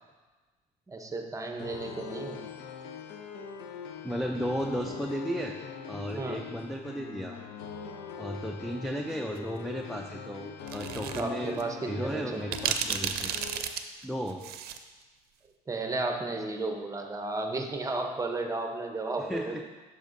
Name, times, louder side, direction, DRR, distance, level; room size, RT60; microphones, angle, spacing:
voice 1, 0.9-2.4 6.1-6.4 11.1-12.4 15.7-19.6, right 2 dB, 20° right, 4 dB, 0.7 m, -33 dB
sound 1, 1.6-13.6, left 6 dB, 90° left, 0.6 m, -42 dB
voice 2, 4.0-5.6 5.9-7.4 8.2-13.4 14.0-14.5 19.2-19.6, equal, ahead, 2 dB, 0.4 m, -34 dB
sound 2, 10.7-11.2 11.6-11.7 12.5-14.8, right 8 dB, 70° right, 0.5 m, -32 dB
7.9 x 6.3 x 2.6 m, 1.3 s
cardioid pair, 110°, 17 cm